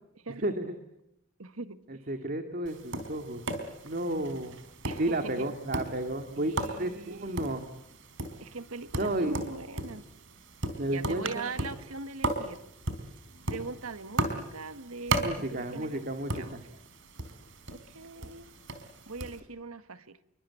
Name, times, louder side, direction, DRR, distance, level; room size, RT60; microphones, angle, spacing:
voice 1, 0.4-0.7 2.1-3.4 3.8-4.5 5.0-7.6 9.0-9.4 10.8-11.5 15.2-16.6, right 1 dB, 45° right, 6 dB, 2.3 m, -32 dB
voice 2, 1.4-2.1 4.0-4.5 4.8-5.5 6.4-7.5 8.4-10.0 10.9-12.6 13.5-16.0 16.3-16.5 17.7-18.5 19.0-20.2, right 3 dB, 85° right, 11 dB, 1.8 m, -41 dB
Tap, 2.7-19.4, right 2 dB, 60° right, 4.2 m, -37 dB
28.5 x 24.0 x 8.7 m, 0.82 s
head